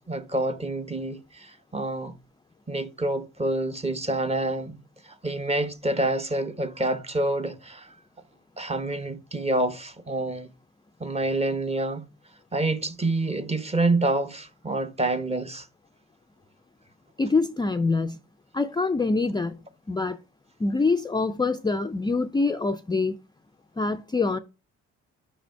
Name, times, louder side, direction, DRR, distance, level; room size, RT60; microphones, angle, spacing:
voice 1, 0.0-2.1 2.7-7.9 8.6-10.5 11.0-12.1 12.5-15.7, right 2 dB, 20° right, 0.9 m, -27 dB
voice 2, 17.2-18.2 18.5-20.2 20.6-23.1 23.8-24.4, left 3 dB, 15° left, 0.4 m, -25 dB
5.5 x 5.0 x 4.5 m
cardioid pair, 90°, 30 cm